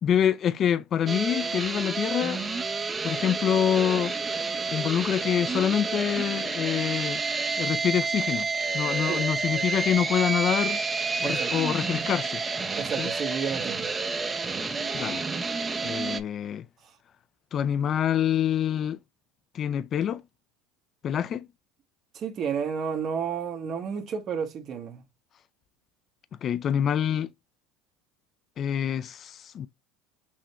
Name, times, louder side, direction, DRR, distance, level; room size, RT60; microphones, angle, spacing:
voice 1, 0.0-2.4 3.0-4.1 4.7-7.2 7.6-8.5 8.7-10.8 11.2-12.4 13.0-13.1 14.9-15.2 15.8-16.6 17.5-19.0 19.5-20.2 21.0-21.5 26.4-27.3 28.6-29.7, left 9 dB, 40° left, 0.3 m, -26 dB
sound 1, 1.1-16.2, right 4 dB, 20° right, 0.6 m, -29 dB
voice 2, 11.2-11.5 12.8-13.9 22.1-25.0, right 7 dB, 45° right, 1.1 m, -31 dB
6.1 x 2.1 x 2.9 m
supercardioid pair, 100°, 0 cm